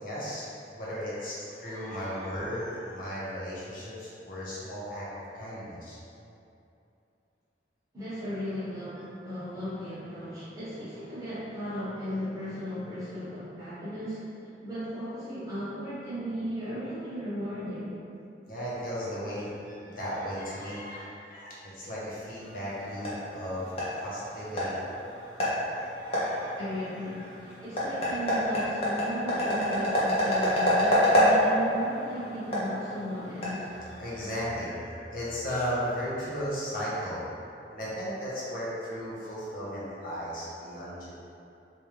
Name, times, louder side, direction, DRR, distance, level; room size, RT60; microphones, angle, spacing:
voice 1, 0.0-0.5 0.7-6.0 18.5-24.8 25.7-26.5 27.0-27.3 33.9-37.2 37.7-41.1, equal, 55° left, -8 dB, 0.9 m, -35 dB
voice 2, 7.9-14.2 14.6-17.9 26.5-33.8, equal, 20° right, -12 dB, 1.1 m, -36 dB
sound 1, 22.4-34.2, equal, 35° left, 0.8 m, -28 dB
3.5 x 2.6 x 3.2 m, 2.7 s
head